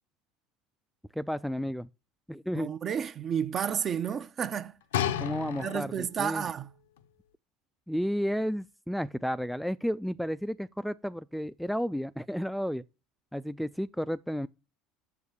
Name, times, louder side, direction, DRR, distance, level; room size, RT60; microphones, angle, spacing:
voice 1, 1.2-1.9 2.3-2.7 5.2-6.5 7.9-12.8 13.3-14.5, equal, ahead, 0.3 m, -32 dB
voice 2, 2.5-4.8 5.6-6.7, right 8 dB, 40° right, 0.7 m, -31 dB
sound 1, 4.9-6.2 7.0-7.1, left 10 dB, 85° left, 0.6 m, -32 dB
7.1 x 4.8 x 6.8 m
hypercardioid pair, 85°, 0 cm